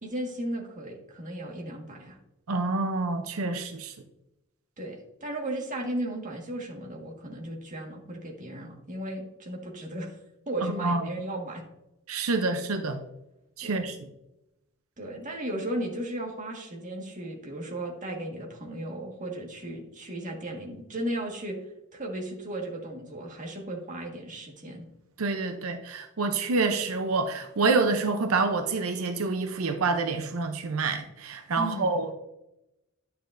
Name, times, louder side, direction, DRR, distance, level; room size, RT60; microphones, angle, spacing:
voice 1, 0.0-2.2 4.8-10.2 10.5-11.6 13.6-13.9 15.0-21.6 21.9-24.9 31.6-32.0, right 1 dB, 40° right, -1 dB, 1.7 m, -35 dB
voice 2, 2.5-3.9 10.6-11.0 12.1-13.0 13.6-13.9 25.2-32.1, right 3 dB, 90° right, 7 dB, 0.6 m, -27 dB
10.5 x 6.8 x 2.6 m, 0.90 s
head